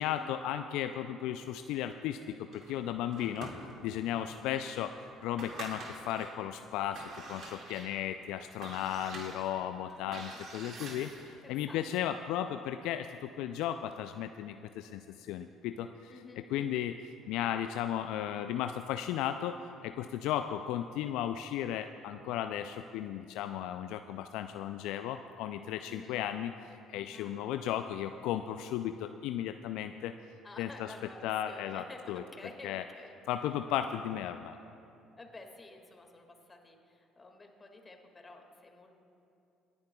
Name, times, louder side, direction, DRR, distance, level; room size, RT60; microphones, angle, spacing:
voice 1, 0.0-3.5 3.8-4.9 5.2-16.1 16.5-16.9 17.3-19.6 19.8-30.1 30.6-30.9 31.2-32.2 32.6-32.8 33.3-34.6, left 11 dB, 70° left, 8 dB, 0.3 m, -35 dB
sound 1, 2.5-4.1 4.6-4.7 5.2-6.4 6.8-11.4, right 3 dB, 60° right, 1.9 m, -46 dB
voice 2, 9.8-11.1 11.4-11.8 16.1-16.9 25.9-26.3 27.1-27.4 30.4-33.2 35.2-38.9, left 2 dB, 25° left, 3 dB, 1.9 m, -51 dB
27.5 x 10.5 x 2.3 m, 2.7 s
hypercardioid pair, 55°, 0 cm